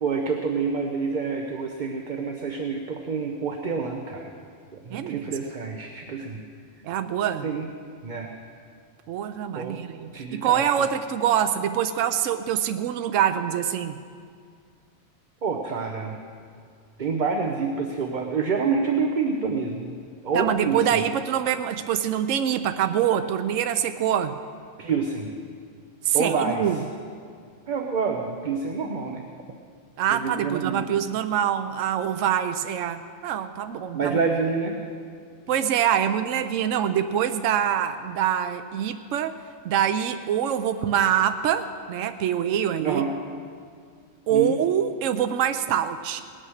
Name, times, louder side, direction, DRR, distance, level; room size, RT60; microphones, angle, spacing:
voice 1, 0.0-4.3 4.7-6.4 7.4-7.7 8.0-8.3 9.5-9.8 10.1-10.6 15.4-16.2 17.0-20.0 20.2-20.8 24.8-25.3 26.1-26.7 27.7-29.3 30.1-30.8 33.9-34.8 42.8-43.1 44.3-44.5, right 5 dB, 40° right, 3 dB, 0.9 m, -27 dB
voice 2, 4.9-5.3 6.8-7.5 9.1-14.0 20.3-24.3 26.1-26.8 30.0-34.2 35.5-39.4 39.6-43.0 44.3-46.2, right 9 dB, 75° right, 9 dB, 0.9 m, -25 dB
19.0 x 8.9 x 6.4 m, 2.2 s
omnidirectional pair, 1.4 m